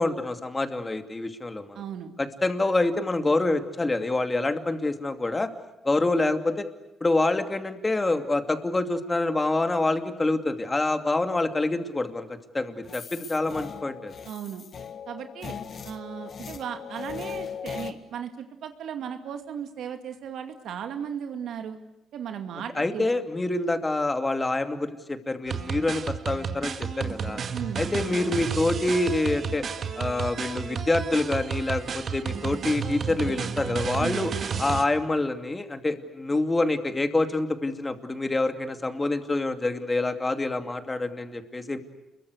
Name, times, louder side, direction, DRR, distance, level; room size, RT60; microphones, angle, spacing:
voice 1, 0.0-1.8 2.2-5.5 5.8-6.6 7.0-14.1 22.7-27.4 27.8-29.7 29.9-34.3 34.6-41.8, left 2 dB, 20° left, 7 dB, 2.6 m, -26 dB
voice 2, 1.7-2.1 14.2-14.6 15.1-15.5 15.8-21.8 22.1-23.1 27.5-27.8 34.0-34.2, right 8 dB, 75° right, 7 dB, 2.3 m, -36 dB
sound 1, 12.8-17.9, left 7 dB, 50° left, 1.8 m, -38 dB
sound 2, 25.5-34.8, right 6 dB, 55° right, 1.9 m, -32 dB
29.0 x 22.5 x 8.2 m, 0.95 s
cardioid pair, 90°, 0 cm